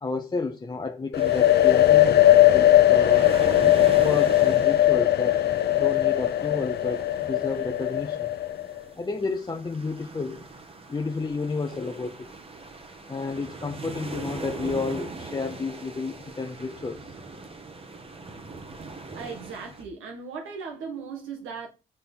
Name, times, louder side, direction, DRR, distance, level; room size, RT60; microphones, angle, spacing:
voice 1, 0.0-3.4 4.0-5.4 5.8-8.3 9.0-10.4 10.9-12.3 13.1-17.1, left 3 dB, 20° left, 0.7 m, -31 dB
sound 1, 1.1-8.8, left 13 dB, 55° left, 0.7 m, -19 dB
sound 2, 1.2-19.8, right 3 dB, 30° right, 1.4 m, -41 dB
voice 2, 19.1-21.7, right 5 dB, 85° right, 1.7 m, -37 dB
6.1 x 4.4 x 5.5 m
cardioid pair, 90°, 20 cm